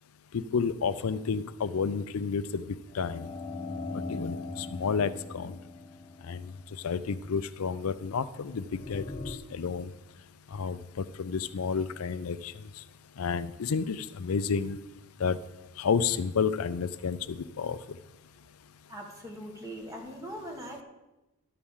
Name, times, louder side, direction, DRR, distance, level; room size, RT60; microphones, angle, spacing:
voice 1, 0.3-3.3 4.1-5.6 6.3-6.5 6.8-9.9 10.5-12.5 13.2-14.8 15.2-15.4 15.8-17.8, left 5 dB, 80° left, 15 dB, 0.5 m, -31 dB
sound 1, 2.9-6.9 8.7-9.4, left 3 dB, 25° left, 0.7 m, -39 dB
voice 2, 18.9-20.8, right 1 dB, 15° right, 1 dB, 1.6 m, -41 dB
11.5 x 4.8 x 7.2 m, 1.0 s
head